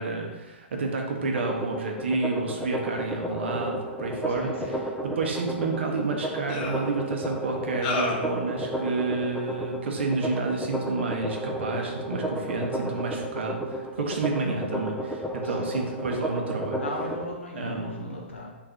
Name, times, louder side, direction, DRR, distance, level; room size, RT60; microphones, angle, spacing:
voice 1, 0.0-16.8 17.5-18.3, right 3 dB, 70° right, 2 dB, 0.7 m, -30 dB
sound 1, 1.2-17.2, right 1 dB, 5° left, 0.4 m, -32 dB
voice 2, 4.3-4.8 15.4-15.8 16.8-18.5, left 2 dB, 90° left, -2 dB, 0.9 m, -37 dB
sound 2, 5.5-5.6 6.5-6.9 7.8-8.3, left 3 dB, 40° left, 0.6 m, -30 dB
3.4 x 2.5 x 3.5 m, 1.1 s
hypercardioid pair, 125°, 6 cm